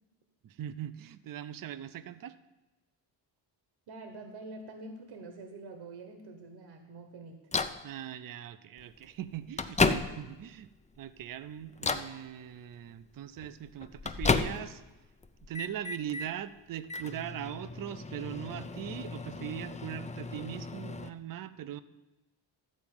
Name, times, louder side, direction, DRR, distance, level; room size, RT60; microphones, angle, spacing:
voice 1, 0.4-2.4 7.8-10.7 11.0-14.8 15.5-21.8, right 11 dB, 45° right, 13 dB, 0.5 m, -40 dB
voice 2, 3.9-7.4, right 2 dB, 75° right, 6 dB, 1.4 m, -46 dB
Microwave oven, 7.5-7.8 8.8-8.9 9.3-10.5 11.0-11.3 11.7-12.1 13.4-14.9 15.2-16.3 16.8-21.1, left 4 dB, 15° left, 0.4 m, -33 dB
13.5 x 4.7 x 8.8 m, 1.1 s
wide cardioid pair, 150°, 46 cm